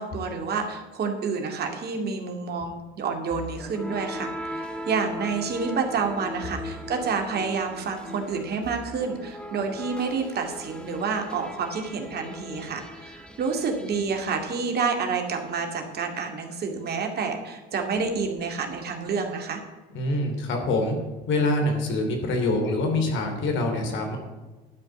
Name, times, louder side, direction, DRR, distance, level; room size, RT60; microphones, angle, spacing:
voice 1, 0.0-19.6, right 5 dB, 50° right, 4 dB, 2.3 m, -29 dB
sound 1, 3.3-15.2, equal, 5° left, 1.6 m, -39 dB
voice 2, 19.9-21.0 21.3-24.2, left 2 dB, 65° left, 3 dB, 3.0 m, -25 dB
12.0 x 5.3 x 8.1 m, 1.2 s
supercardioid pair, 85°, 21 cm